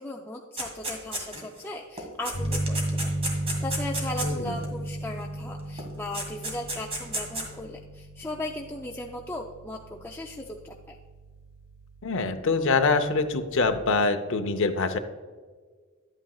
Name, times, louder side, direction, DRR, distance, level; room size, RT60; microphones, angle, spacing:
voice 1, 0.0-3.2 3.6-11.0, left 1 dB, 10° left, 0 dB, 0.4 m, -37 dB
sound 1, 0.6-1.6 2.0-4.7 5.8-5.9 6.1-7.5, right 1 dB, 30° right, 1.9 m, -33 dB
Piano, 2.3-13.6, right 1 dB, 45° left, 1.5 m, -35 dB
voice 2, 4.2-4.6 12.0-15.0, left 4 dB, 60° left, 6 dB, 0.7 m, -25 dB
11.5 x 8.9 x 2.4 m, 1.5 s
head